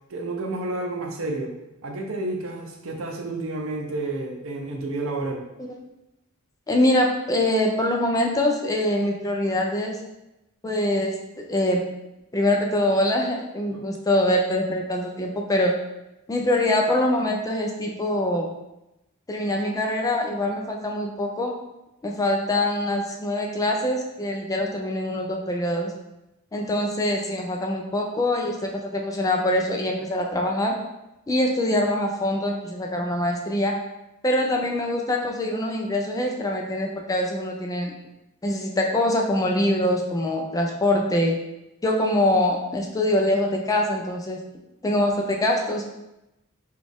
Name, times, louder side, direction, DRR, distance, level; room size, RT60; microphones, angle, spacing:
voice 1, 0.1-1.5 1.8-5.4 13.7-13.8, right 2 dB, 70° right, 2 dB, 0.6 m, -30 dB
voice 2, 6.7-10.0 10.6-11.8 12.3-15.7 16.3-18.5 19.3-21.6 22.0-25.9 26.5-30.7 31.3-33.8 34.2-37.9 38.4-41.4 41.8-44.4 44.8-45.8, left 1 dB, 15° left, 1 dB, 0.4 m, -24 dB
4.0 x 2.3 x 3.4 m, 0.93 s
head